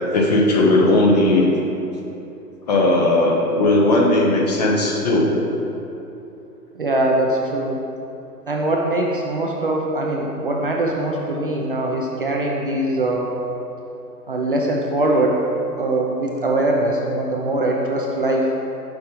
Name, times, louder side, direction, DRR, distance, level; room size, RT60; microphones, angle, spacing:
voice 1, 0.1-1.5 2.7-5.4, left 2 dB, 25° left, -1 dB, 0.6 m, -17 dB
voice 2, 6.8-7.8 8.5-13.3 14.3-15.5 15.8-18.5, right 1 dB, 35° right, -1 dB, 0.4 m, -22 dB
6.2 x 5.8 x 3.8 m, 2.9 s
figure-of-eight pair, 130°, 49 cm